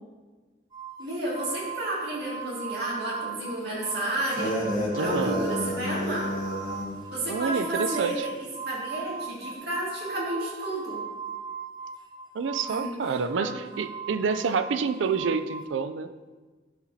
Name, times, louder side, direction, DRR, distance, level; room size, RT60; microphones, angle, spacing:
sound 1, 0.7-15.7, right 6 dB, 20° right, 0.5 m, -39 dB
voice 1, 1.0-4.6 5.0-6.3 7.1-8.3 8.6-11.0 12.7-13.5, right 1 dB, 60° right, -6 dB, 2.4 m, -31 dB
sound 2, 4.3-6.9, left 1 dB, 45° left, 1.7 m, -30 dB
voice 2, 4.9-5.4 7.3-8.3 12.3-16.1, right 5 dB, 80° right, 10 dB, 0.4 m, -28 dB
11.0 x 5.0 x 2.8 m, 1.3 s
head